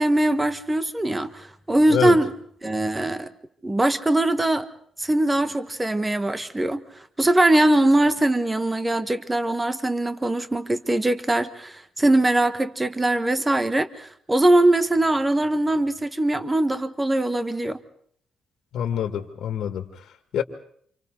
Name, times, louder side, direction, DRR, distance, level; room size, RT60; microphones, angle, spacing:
voice 1, 0.0-2.3 2.6-3.3 3.6-4.7 5.0-6.8 7.2-17.8, right 1 dB, 15° right, 1.5 m, -21 dB
voice 2, 18.7-20.4, left 9 dB, 70° left, 2.1 m, -26 dB
29.5 x 28.0 x 4.0 m
cardioid pair, 120°, 0 cm